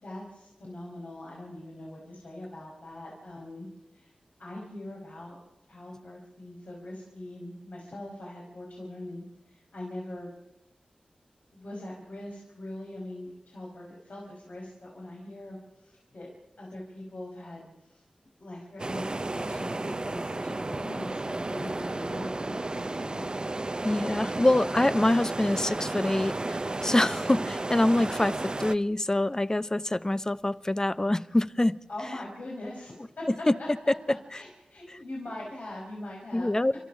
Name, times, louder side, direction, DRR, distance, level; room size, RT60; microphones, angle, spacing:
voice 1, 0.0-3.6 3.9-4.1 4.4-5.4 5.7-10.3 11.5-16.3 16.6-18.0 18.4-23.3 31.9-33.9 34.3-36.6, left 1 dB, 75° left, -3 dB, 5.1 m, -42 dB
sound 1, 18.8-28.8, right 2 dB, 35° right, 0.7 m, -33 dB
voice 2, 23.8-31.8 33.5-33.6 34.9-35.0 36.3-36.7, left 1 dB, 25° left, 17 dB, 0.6 m, -25 dB
30.0 x 13.5 x 7.2 m, 0.97 s
cardioid pair, 55°, 3 cm